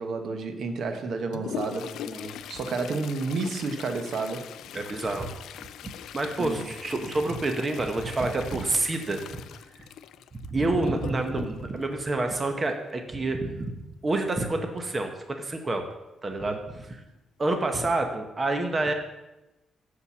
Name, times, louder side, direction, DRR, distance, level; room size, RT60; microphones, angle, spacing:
voice 1, 0.0-1.9 2.5-4.5 6.4-6.7, right 4 dB, 60° right, 6 dB, 1.1 m, -30 dB
Toilet flush, 0.9-12.9 14.8-14.9 15.2-15.3 16.1-16.2 16.8-17.1 17.5-17.7, left 10 dB, 85° left, 0.3 m, -41 dB
voice 2, 4.7-5.3 6.1-9.2 9.8-9.9 10.5-15.8 16.2-17.0 17.4-18.9, right 2 dB, 25° right, 5 dB, 0.9 m, -28 dB
7.1 x 6.6 x 7.2 m, 1.0 s
cardioid pair, 135°, 0 cm